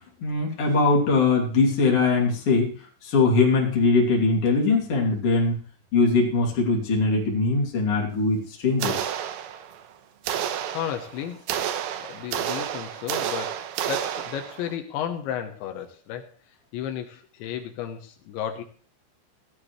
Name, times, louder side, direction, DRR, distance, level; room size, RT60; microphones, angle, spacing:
voice 1, 0.2-2.7 3.0-5.6 5.9-9.0, left 3 dB, 35° left, -2 dB, 3.2 m, -21 dB
sound 1, 8.8-9.9 10.3-14.8, right 10 dB, 75° right, 2.4 m, -30 dB
voice 2, 10.7-11.4 12.0-16.3 16.7-18.6, left 9 dB, 80° left, 5 dB, 3.3 m, -33 dB
16.5 x 12.5 x 3.2 m, 0.41 s
omnidirectional pair, 5.2 m